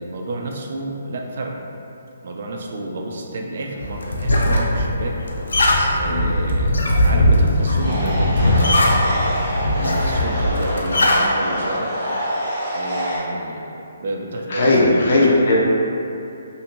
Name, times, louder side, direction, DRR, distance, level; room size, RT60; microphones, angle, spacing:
voice 1, 0.0-1.5 2.2-5.2 6.0-8.9 9.7-11.9 12.7-15.1, right 2 dB, 50° right, 1 dB, 0.3 m, -30 dB
sound 1, 3.8-11.3, left 1 dB, 85° left, 0.4 m, -19 dB
sound 2, 7.8-13.2, equal, 20° right, 1.0 m, -26 dB
voice 2, 14.5-15.6, left 2 dB, 45° left, -5 dB, 0.6 m, -17 dB
2.5 x 2.5 x 2.9 m, 2.7 s
hypercardioid pair, 170°, 0 cm